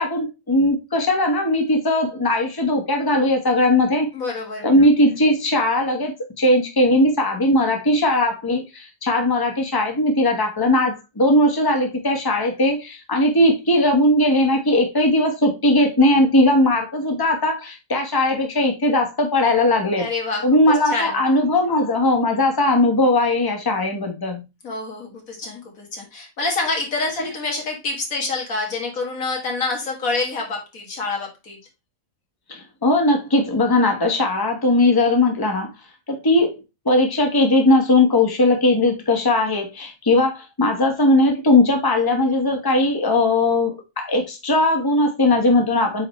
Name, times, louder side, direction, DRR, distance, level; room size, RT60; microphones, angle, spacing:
voice 1, 0.0-4.1 4.6-6.1 6.4-20.1 20.4-24.4 27.1-27.3 32.5-35.7 36.1-36.6 36.8-46.1, left 1 dB, 15° left, 3 dB, 1.3 m, -19 dB
voice 2, 4.1-4.7 20.0-21.2 24.6-31.6, left 3 dB, 85° left, 0 dB, 2.3 m, -27 dB
8.4 x 3.8 x 3.2 m, 0.25 s
omnidirectional pair, 1.4 m